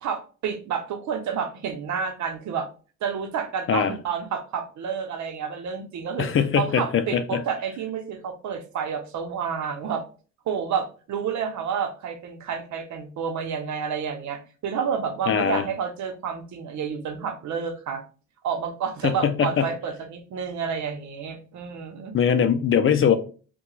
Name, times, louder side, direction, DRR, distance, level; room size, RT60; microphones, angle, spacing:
voice 1, 0.0-2.7 3.0-6.3 6.6-10.0 10.5-18.0 18.4-22.2, right 7 dB, 70° right, 0.8 m, -30 dB
voice 2, 6.2-7.4 15.3-15.6 19.0-19.7 22.1-23.1, left 7 dB, 45° left, 0.5 m, -21 dB
2.7 x 2.3 x 4.0 m
cardioid pair, 90°, 30 cm